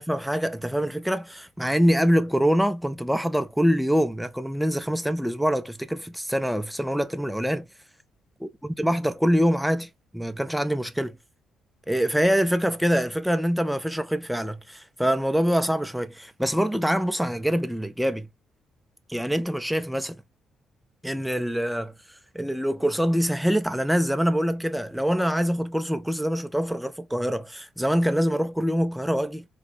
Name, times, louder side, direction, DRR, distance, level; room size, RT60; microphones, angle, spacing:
voice 1, 0.0-7.7 8.6-11.2 11.9-18.3 19.1-20.2 21.0-21.9 22.3-29.4, equal, ahead, 0.3 m, -24 dB
3.1 x 2.5 x 2.7 m
cardioid pair, 90°, 0 cm